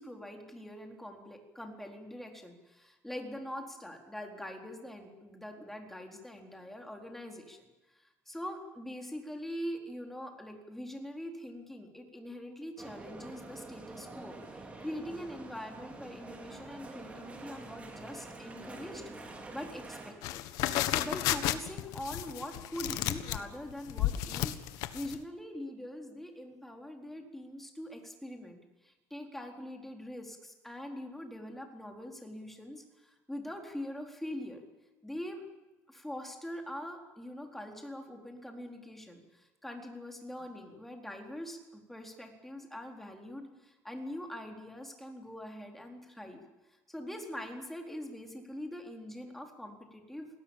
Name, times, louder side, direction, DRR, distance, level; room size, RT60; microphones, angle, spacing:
voice 1, 0.0-19.0 19.3-20.4 20.9-34.6 35.0-35.4 35.9-50.3, left 1 dB, 5° left, 3 dB, 4.1 m, -43 dB
sound 1, 12.8-20.1, right 3 dB, 20° right, 4.8 m, -47 dB
sound 2, 20.2-25.2, left 14 dB, 80° left, 1.5 m, -32 dB
28.0 x 19.0 x 7.4 m, 1.1 s
cardioid pair, 130°, 6 cm